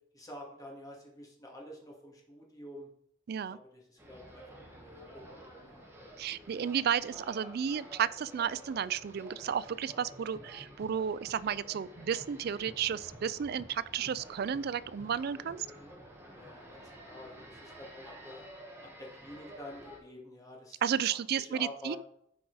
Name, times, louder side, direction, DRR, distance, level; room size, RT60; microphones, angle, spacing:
voice 1, 0.1-2.9 3.5-5.8 10.4-10.5 15.6-15.9 16.3-18.4 18.8-20.8 21.1-22.0, left 1 dB, 20° left, -2 dB, 2.2 m, -49 dB
voice 2, 3.3-3.6 6.2-15.7 20.8-22.0, right 8 dB, 55° right, 18 dB, 0.3 m, -33 dB
sound 1, 4.0-20.0, equal, 15° right, 1.6 m, -51 dB
11.0 x 4.7 x 4.8 m, 0.73 s
head